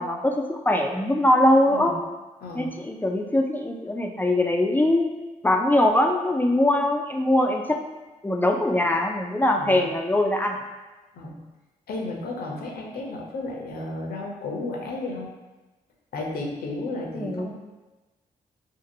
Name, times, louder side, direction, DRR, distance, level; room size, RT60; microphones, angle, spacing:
voice 1, 0.0-1.9 2.5-5.0 5.4-7.8 8.2-10.6 17.1-17.5, left 1 dB, 10° left, 2 dB, 0.4 m, -22 dB
voice 2, 2.4-2.8 9.6-9.9 11.1-11.5 11.9-15.3 16.1-17.5, left 2 dB, 70° left, -1 dB, 0.6 m, -33 dB
2.8 x 2.5 x 2.6 m, 1.1 s
supercardioid pair, 55°, 17 cm